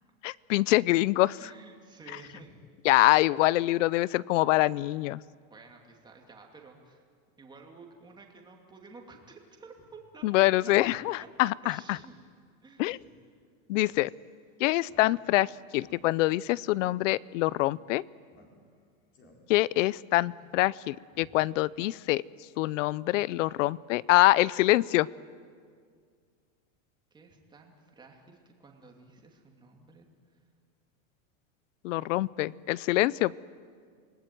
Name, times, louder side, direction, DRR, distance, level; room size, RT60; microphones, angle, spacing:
voice 1, 0.2-1.4 2.9-5.2 10.2-12.0 12.8-13.0 13.7-14.1 14.6-15.5 15.7-18.0 19.5-22.2 22.6-25.1 31.8-33.3, left 18 dB, 70° left, 22 dB, 0.7 m, -25 dB
voice 2, 1.4-2.6 5.5-7.0 7.4-11.3 11.6-12.1 12.6-12.9 20.4-20.5 21.2-21.3 27.1-30.1, right 4 dB, 10° right, 2 dB, 2.7 m, -52 dB
Speech synthesizer, 9.7-9.9 10.3-10.4 10.7-11.0 11.4-11.5 11.9-12.1 12.4-12.5 12.8-13.1 13.9-14.1 14.8-15.4 15.8-16.4 16.7-16.9 17.5-17.7 18.3-18.8 19.1-19.7, left 2 dB, 30° left, 4.3 m, -59 dB
29.0 x 20.0 x 9.3 m, 2.1 s
supercardioid pair, 165°, 39 cm